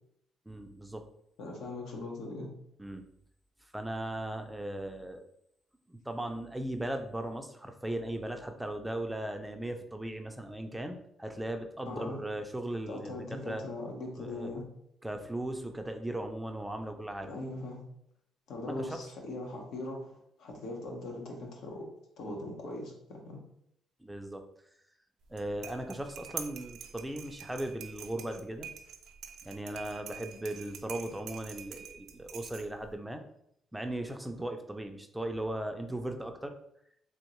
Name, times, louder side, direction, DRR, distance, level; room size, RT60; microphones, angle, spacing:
voice 1, 0.5-1.0 2.8-3.1 3.7-5.2 5.9-13.6 14.2-14.5 15.0-17.3 18.8-19.0 24.0-24.4 25.3-28.7 29.4-33.2 33.7-36.5, right 1 dB, 10° right, 5 dB, 0.4 m, -37 dB
voice 2, 1.4-2.5 11.9-12.2 12.9-14.7 17.2-17.8 18.5-21.8 22.2-23.4, left 2 dB, 80° left, 0 dB, 0.9 m, -40 dB
sound 1, 25.2-32.9, right 8 dB, 80° right, 0.4 m, -46 dB
3.5 x 2.8 x 3.0 m, 0.72 s
cardioid pair, 90°, 0 cm